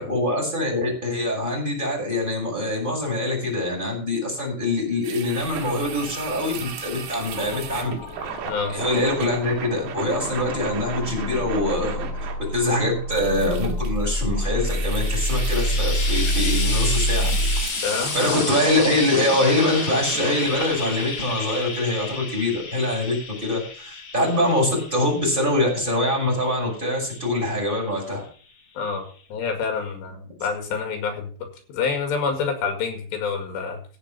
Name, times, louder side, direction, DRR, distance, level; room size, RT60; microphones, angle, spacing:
voice 1, 0.0-7.9 8.7-17.7 18.1-28.2, left 1 dB, 10° right, 0 dB, 5.6 m, -24 dB
sound 1, 5.0-21.1, right 8 dB, 80° right, 3.7 m, -35 dB
sound 2, 5.4-17.6, equal, 40° left, 1.9 m, -28 dB
Frying (food), 14.5-27.9 28.8-28.9, left 4 dB, 60° left, 1.2 m, -32 dB
voice 2, 17.8-18.2 28.8-31.3 31.7-33.8, left 5 dB, 80° left, 5 dB, 4.2 m, -27 dB
16.0 x 6.7 x 5.6 m, 0.41 s
omnidirectional pair, 5.0 m